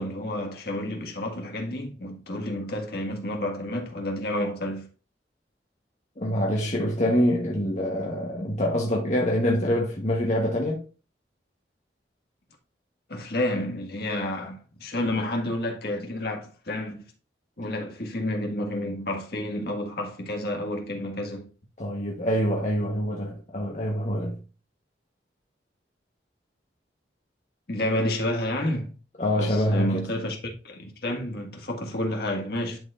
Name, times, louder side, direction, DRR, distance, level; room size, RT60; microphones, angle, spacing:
voice 1, 0.0-4.9 13.1-17.0 17.6-21.5 27.7-28.9 29.4-30.4 30.6-32.8, left 1 dB, 60° left, 1.6 m, -30 dB
voice 2, 6.2-10.8 21.8-24.4 29.2-30.0, equal, 40° left, 1.1 m, -25 dB
10.5 x 4.4 x 2.5 m
head